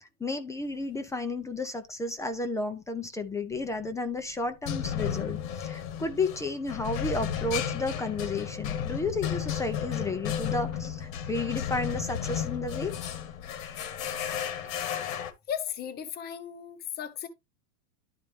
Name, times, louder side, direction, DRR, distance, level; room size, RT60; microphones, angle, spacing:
voice 1, 0.0-12.9, left 2 dB, 5° left, 0.5 m, -32 dB
sound 1, 3.5-3.9 4.7-15.3, left 9 dB, 70° left, 1.4 m, -33 dB
voice 2, 15.5-17.3, left 9 dB, 25° left, 1.0 m, -35 dB
11.5 x 4.1 x 3.2 m
supercardioid pair, 135°, 42 cm